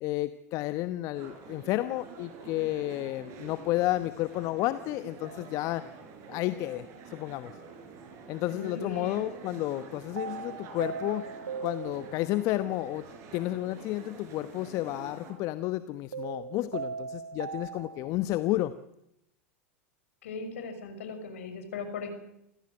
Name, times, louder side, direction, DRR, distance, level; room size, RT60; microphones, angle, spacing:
voice 1, 0.0-5.8 6.3-7.6 8.3-11.3 11.6-13.0 13.3-18.7, left 16 dB, 45° left, 13 dB, 1.0 m, -31 dB
sound 1, 1.1-15.3, right 4 dB, 45° right, 6.0 m, -47 dB
sound 2, 6.5-6.7 10.2-12.5 16.1-18.1, right 6 dB, 85° right, 1.4 m, -39 dB
voice 2, 8.5-9.3 20.2-22.1, left 4 dB, 70° left, 7 dB, 6.2 m, -38 dB
28.0 x 15.5 x 7.9 m, 0.81 s
hypercardioid pair, 90°, 7 cm